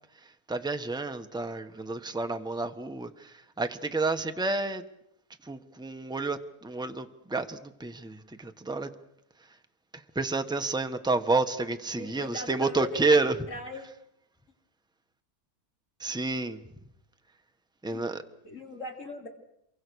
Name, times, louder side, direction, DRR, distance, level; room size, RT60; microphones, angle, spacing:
voice 1, 0.5-4.8 5.4-8.9 10.1-13.3 16.0-16.6 17.8-18.2, right 3 dB, 5° right, 1.2 m, -29 dB
voice 2, 12.0-13.1 13.5-13.9 17.9-18.0 18.4-19.3, left 2 dB, 55° left, 4.1 m, -39 dB
28.0 x 24.0 x 6.4 m
omnidirectional pair, 1.6 m